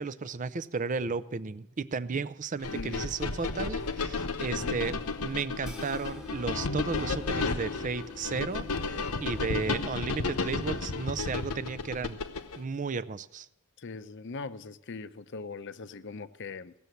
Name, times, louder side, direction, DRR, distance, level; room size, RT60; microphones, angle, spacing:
voice 1, 0.0-4.9 5.2-8.7 9.2-12.2 12.6-13.5, right 4 dB, 35° right, 14 dB, 0.4 m, -34 dB
sound 1, 2.6-12.6, left 3 dB, 85° left, 0.9 m, -33 dB
voice 2, 2.7-3.1 4.5-4.8 9.5-9.8 13.8-16.7, left 4 dB, 55° left, 13 dB, 0.6 m, -41 dB
sound 2, 5.6-12.1, left 3 dB, ahead, 1.3 m, -47 dB
17.0 x 7.0 x 7.9 m, 0.88 s
head